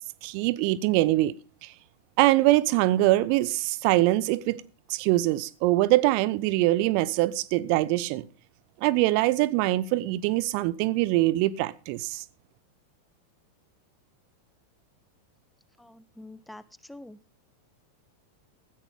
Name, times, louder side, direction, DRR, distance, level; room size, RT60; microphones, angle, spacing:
voice 1, 0.2-1.3 1.6-1.7 2.2-4.6 4.9-8.3 8.8-12.2, right 17 dB, 45° right, 0.8 m, -23 dB
voice 2, 15.8-17.2, left 1 dB, 5° left, 0.8 m, -46 dB
16.0 x 14.0 x 3.4 m
figure-of-eight pair, 90°, 0 cm